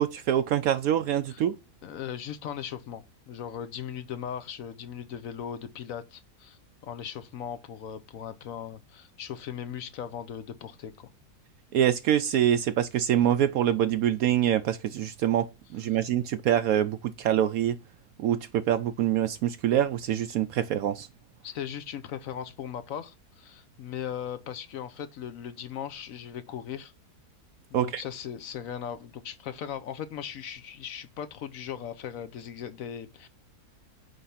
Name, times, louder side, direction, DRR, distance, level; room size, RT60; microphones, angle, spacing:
voice 1, 0.0-1.5 11.7-15.5 15.7-17.8 18.2-21.1 27.7-28.0, right 10 dB, 70° right, 0.9 m, -25 dB
voice 2, 1.8-11.1 21.4-26.9 27.7-33.3, left 9 dB, 65° left, 1.1 m, -38 dB
9.3 x 3.4 x 5.6 m
omnidirectional pair, 1.7 m